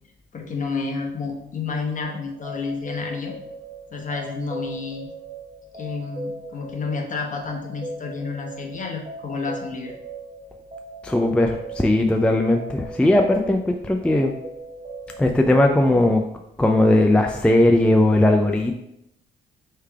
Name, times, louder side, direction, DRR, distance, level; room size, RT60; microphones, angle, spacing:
voice 1, 0.3-3.3 3.9-5.1 5.7-10.0, left 4 dB, 40° left, 2 dB, 1.0 m, -30 dB
sound 1, 2.0-15.3, right 2 dB, 35° right, 1.0 m, -38 dB
voice 2, 11.0-14.3 15.2-16.2 16.6-18.7, left 1 dB, 5° left, 3 dB, 0.3 m, -18 dB
3.4 x 3.3 x 4.6 m, 0.80 s
cardioid pair, 90°, 20 cm